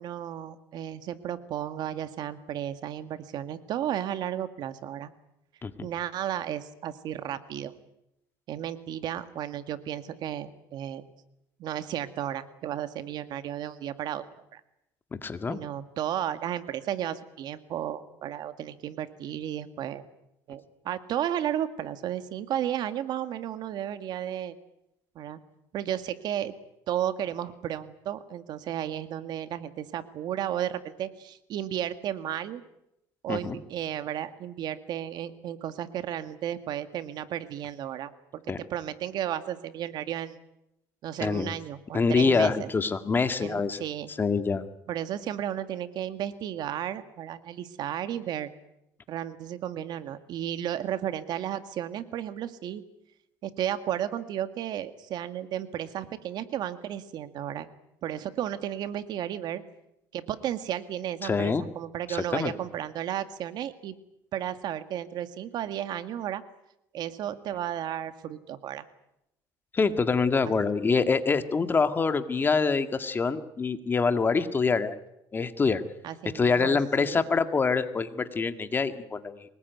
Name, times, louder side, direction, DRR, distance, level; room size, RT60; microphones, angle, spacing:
voice 1, 0.0-5.1 5.8-7.7 8.5-11.0 11.6-14.2 14.5-14.6 15.5-20.0 20.5-24.6 25.2-25.4 25.7-26.5 26.9-32.6 33.2-40.4 41.0-42.7 43.4-44.1 44.9-48.5 49.1-52.8 53.4-57.7 58.0-59.6 60.1-63.9 64.3-66.4 66.9-68.9 70.5-70.6 76.0-77.2, right 11 dB, 60° right, 10 dB, 2.0 m, -33 dB
voice 2, 15.2-15.6 33.3-33.6 38.5-38.6 41.2-41.5 41.9-43.8 44.1-44.7 61.2-61.6 62.1-62.5 69.7-75.0 75.3-75.8 76.3-79.4, left 4 dB, 25° left, 9 dB, 1.9 m, -25 dB
24.0 x 20.5 x 9.4 m, 0.84 s
cardioid pair, 110°, 8 cm